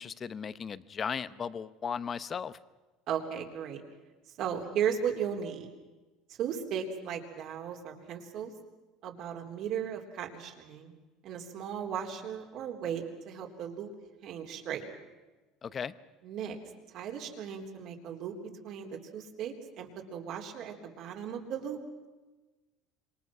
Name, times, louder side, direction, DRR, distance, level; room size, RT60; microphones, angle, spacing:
voice 1, 0.0-2.6 15.6-15.9, left 6 dB, 25° left, 16 dB, 0.8 m, -36 dB
voice 2, 3.1-3.8 4.4-5.7 6.3-8.5 9.0-10.9 11.2-13.9 14.2-14.8 16.2-16.6 16.9-18.4 18.6-21.8, right 8 dB, 50° right, 3 dB, 3.7 m, -36 dB
27.0 x 24.5 x 6.1 m, 1.2 s
cardioid pair, 150°, 0 cm